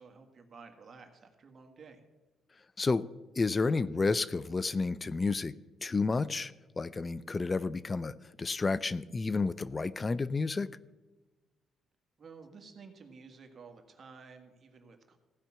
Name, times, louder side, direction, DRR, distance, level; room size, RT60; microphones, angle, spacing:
voice 1, 0.0-2.0 12.2-15.2, right 5 dB, 45° right, 5 dB, 1.7 m, -52 dB
voice 2, 3.4-5.5 5.8-10.7, left 4 dB, 30° left, 18 dB, 0.4 m, -31 dB
15.5 x 5.7 x 7.4 m, 1.2 s
cardioid pair, 90°, 0 cm